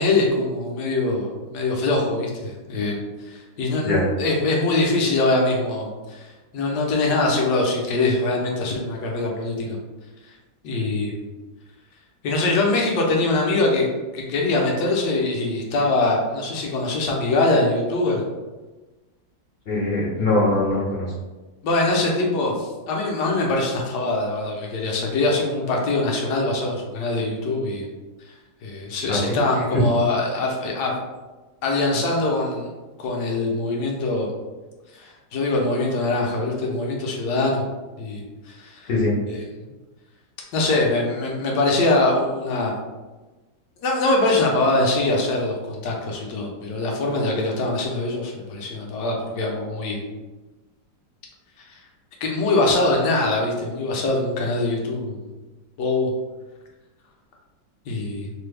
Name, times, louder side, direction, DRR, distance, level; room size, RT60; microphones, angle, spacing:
voice 1, 0.0-6.3 6.5-9.8 10.6-11.2 12.2-13.9 14.1-18.2 21.6-27.9 28.6-30.9 31.6-32.7 33.0-34.3 34.9-37.6 38.0-38.9 39.3-39.5 40.5-42.7 43.8-50.0 52.2-55.2 55.8-56.1 57.9-58.3, left 2 dB, 75° left, -1 dB, 1.2 m, -23 dB
voice 2, 19.7-21.1 29.1-29.4 38.9-39.1, left 2 dB, 55° left, -5 dB, 0.7 m, -22 dB
3.2 x 2.0 x 3.2 m, 1.2 s
omnidirectional pair, 1.9 m